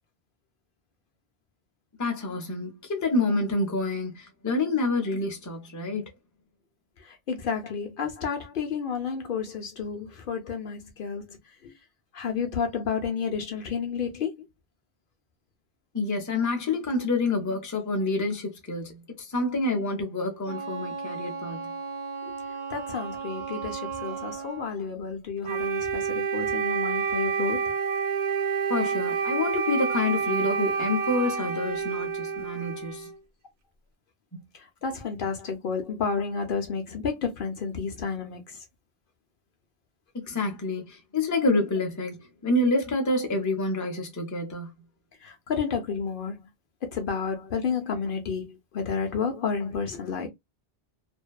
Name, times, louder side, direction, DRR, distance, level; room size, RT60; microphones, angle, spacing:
voice 1, 2.0-6.1 15.9-21.7 28.7-33.1 34.3-34.4 40.1-44.7, left 2 dB, 20° left, 0.5 m, -28 dB
voice 2, 7.0-11.7 12.1-14.3 22.2-22.3 22.7-27.7 34.5-38.6 45.2-46.5 46.8-50.3, left 6 dB, 65° left, 0.7 m, -31 dB
Wind instrument woodwind instrument, 20.4-24.7, right 5 dB, 45° right, 0.8 m, -36 dB
Wind instrument woodwind instrument 2, 25.4-33.2, right 6 dB, 80° right, 0.8 m, -28 dB
2.6 x 2.1 x 2.2 m
omnidirectional pair, 1.1 m